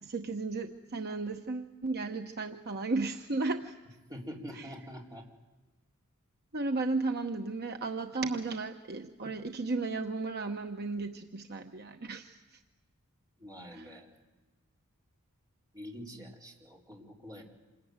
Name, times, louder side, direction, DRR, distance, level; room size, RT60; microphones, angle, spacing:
voice 1, 0.0-3.7 4.5-4.7 6.5-12.6 13.7-14.0 16.2-16.3, right 3 dB, 50° right, 4 dB, 1.0 m, -34 dB
voice 2, 4.1-5.2 13.4-14.1 15.7-17.4, equal, 20° right, -2 dB, 4.1 m, -45 dB
27.5 x 21.0 x 9.5 m, 1.1 s
head